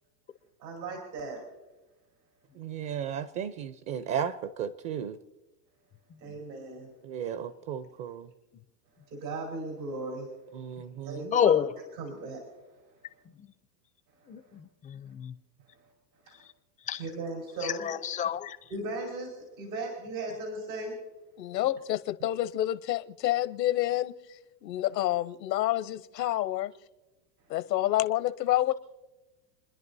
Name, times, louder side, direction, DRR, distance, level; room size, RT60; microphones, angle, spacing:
voice 1, 0.6-1.4 6.2-6.9 9.1-10.3 11.0-11.6 11.9-12.4 16.2-16.4 17.0-17.9 18.7-21.0, right 2 dB, 85° right, 4.8 m, -37 dB
voice 2, 2.6-5.2 7.0-8.3 10.5-11.3, right 8 dB, 45° right, 0.8 m, -35 dB
voice 3, 11.3-11.7 14.3-14.4 14.9-15.3 16.9-17.0 17.6-18.6, left 9 dB, 15° left, 0.4 m, -27 dB
voice 4, 21.4-24.1 24.6-26.7 27.5-28.7, left 14 dB, 90° left, 0.9 m, -28 dB
29.5 x 10.5 x 2.7 m
hypercardioid pair, 115°, 48 cm